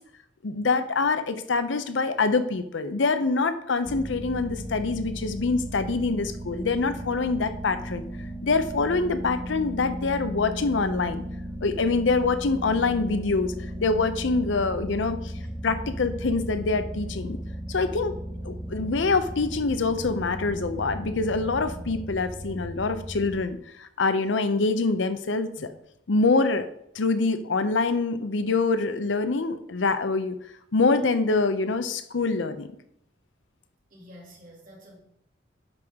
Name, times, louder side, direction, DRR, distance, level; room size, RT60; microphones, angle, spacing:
voice 1, 0.4-8.1 8.4-11.2 11.6-13.5 13.8-15.3 15.6-17.4 17.7-18.1 18.4-25.7 26.1-26.7 26.9-30.4 30.7-32.7, left 3 dB, 75° left, 11 dB, 0.6 m, -25 dB
sound 1, 3.9-23.5, equal, ahead, 1.0 m, -36 dB
voice 2, 33.9-35.0, equal, 45° right, -2 dB, 2.6 m, -48 dB
9.7 x 6.2 x 3.6 m, 0.75 s
head